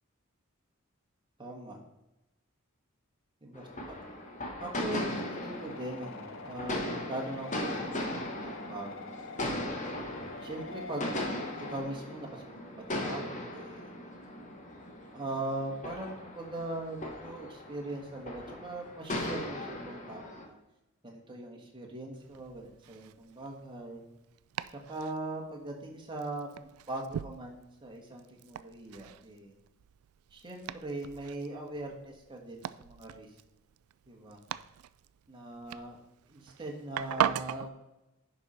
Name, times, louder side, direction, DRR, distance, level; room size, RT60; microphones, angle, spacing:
voice 1, 1.4-1.8 3.4-4.0 4.6-9.6 10.4-11.1 11.6-13.9 15.1-20.6 21.0-24.0 24.7-26.5 26.9-29.5 30.3-33.3 34.1-34.4 35.3-36.0 36.3-37.7, right 2 dB, 20° right, 0 dB, 1.6 m, -40 dB
sound 1, 3.5-20.5, left 1 dB, 35° left, 1.3 m, -38 dB
sound 2, 5.2-11.8, left 4 dB, 60° left, 0.6 m, -46 dB
Domestic sounds home sounds, 22.1-37.7, right 9 dB, 85° right, 0.3 m, -40 dB
10.5 x 5.3 x 4.3 m, 0.95 s
head